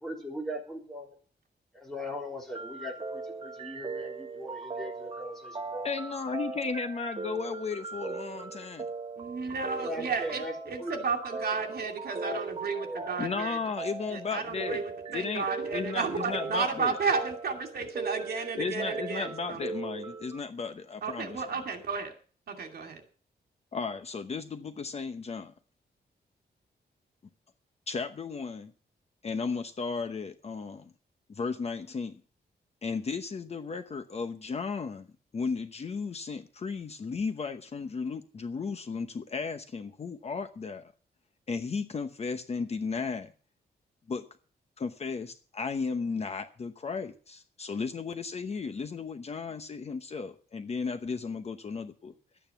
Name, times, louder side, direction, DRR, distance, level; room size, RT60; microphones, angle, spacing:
voice 1, 0.0-1.1 1.7-5.9 9.7-10.5 10.8-10.9 12.0-12.4 12.7-13.2, left 1 dB, ahead, -1 dB, 3.7 m, -39 dB
sound 1, 2.5-20.4, right 4 dB, 30° right, 1.1 m, -39 dB
voice 2, 5.8-8.9 13.2-14.8 15.1-17.0 18.5-21.4 23.7-25.5 27.9-28.7 29.2-30.9 31.3-32.2 32.8-35.1 35.3-40.9 41.5-43.3 44.1-44.3 44.8-52.1, left 5 dB, 35° left, 8 dB, 0.9 m, -35 dB
voice 3, 9.2-13.6 14.1-19.6 21.0-22.1 22.5-23.0, right 5 dB, 65° right, 4 dB, 2.6 m, -33 dB
12.5 x 9.2 x 7.1 m, 0.40 s
wide cardioid pair, 180°, 17 cm